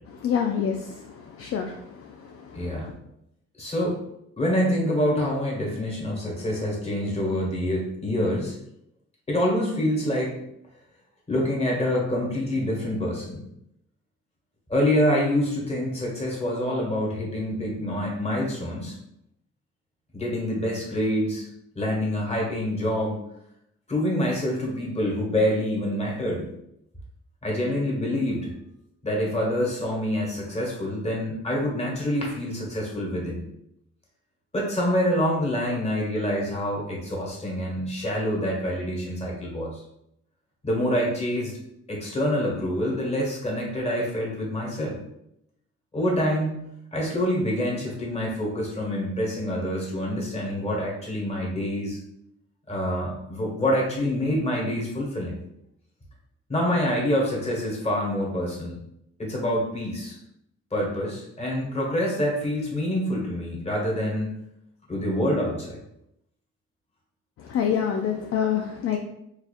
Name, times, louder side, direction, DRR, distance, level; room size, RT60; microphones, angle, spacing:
voice 1, 0.2-1.0 1.4-1.8 67.4-69.0, left 8 dB, 50° left, 3 dB, 0.4 m, -25 dB
voice 2, 2.5-2.9 3.6-4.0 4.4-8.5 9.3-10.3 11.3-13.4 14.7-19.0 20.1-21.4 21.7-23.2 23.9-26.5 27.4-28.5 29.0-33.4 34.5-39.8 40.6-41.5 41.9-45.0 45.9-52.0 52.7-55.3 56.5-58.8 59.2-60.2 60.7-64.3 64.9-65.8, equal, 20° left, -3 dB, 1.5 m, -26 dB
4.7 x 2.9 x 2.4 m, 0.80 s
cardioid pair, 90°, 30 cm